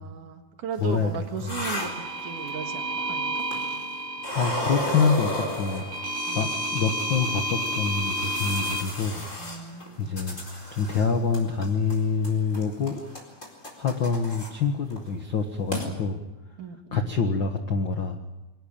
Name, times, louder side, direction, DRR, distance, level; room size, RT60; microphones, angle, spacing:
voice 1, 0.0-3.5 6.3-6.4 9.4-10.1 16.6-17.1, right 7 dB, 65° right, 6 dB, 3.0 m, -37 dB
voice 2, 0.8-1.5 4.3-5.8 6.3-9.2 10.0-10.4 10.7-13.0 13.8-16.2 16.9-18.2, left 5 dB, 60° left, 5 dB, 1.2 m, -26 dB
sound 1, 0.8-2.7 3.4-3.9 4.2-6.3 7.0-7.1 7.6-11.1 11.3-12.0 12.2-14.5 14.9-15.1 15.4-15.5 15.7-15.9, equal, 20° left, 4.4 m, -34 dB
sound 2, 1.7-8.8, right 1 dB, 45° right, 4.1 m, -31 dB
24.0 x 19.0 x 8.9 m, 1.1 s
omnidirectional pair, 4.2 m